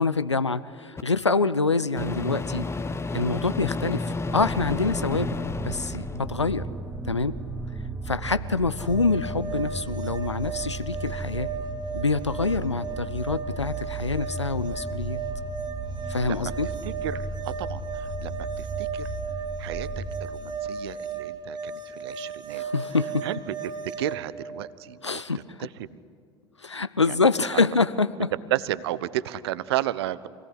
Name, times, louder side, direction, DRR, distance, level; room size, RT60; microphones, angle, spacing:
voice 1, 0.0-2.6 3.1-5.4 5.6-6.7 7.0-7.4 8.1-11.5 11.9-15.2 16.1-16.7 22.5-23.3 25.0-25.7 26.6-28.3, left 4 dB, 90° left, 15 dB, 0.5 m, -26 dB
Microwave oven, 1.0-1.1 2.0-6.2, left 3 dB, 20° left, 1.1 m, -31 dB
sound 1, 4.2-20.4, right 2 dB, 5° right, 2.0 m, -35 dB
sound 2, 8.8-24.1, right 5 dB, 30° right, 2.1 m, -36 dB
voice 2, 16.2-16.5 16.8-19.1 19.6-22.6 23.2-23.4 23.8-25.2 25.6-26.0 27.1-27.2 27.5-27.6 28.5-30.3, right 14 dB, 65° right, 18 dB, 0.8 m, -33 dB
26.0 x 17.5 x 9.9 m, 2.4 s
figure-of-eight pair, 65°, 14 cm